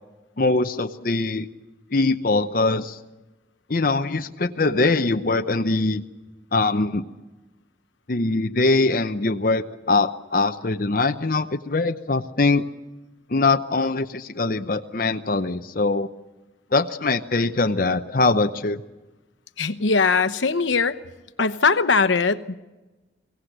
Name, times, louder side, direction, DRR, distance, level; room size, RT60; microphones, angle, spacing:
voice 1, 0.4-1.5 1.9-3.0 3.7-6.0 6.5-7.0 8.1-12.6 13.3-16.1 16.7-18.8, left 3 dB, 45° left, 7 dB, 0.8 m, -22 dB
voice 2, 19.6-21.0 21.4-22.5, left 4 dB, 85° left, 12 dB, 1.0 m, -20 dB
24.0 x 16.5 x 7.9 m, 1.1 s
head